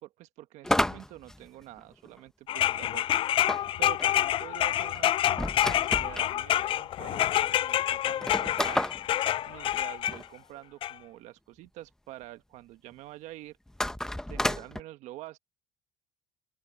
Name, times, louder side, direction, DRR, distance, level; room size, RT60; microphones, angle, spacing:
voice 1, 0.0-3.1 3.3-8.9 9.5-13.6 14.3-15.4, right 16 dB, 70° right, 1.3 m, -46 dB
sound 1, 0.6-2.2 3.5-6.3 7.0-7.1 7.3-7.4 8.1-10.3 13.7-14.8, left 1 dB, 5° left, 0.9 m, -31 dB
sound 2, 2.5-10.2 10.8-10.9, left 12 dB, 45° left, 0.3 m, -27 dB
open air
supercardioid pair, 95°, 13 cm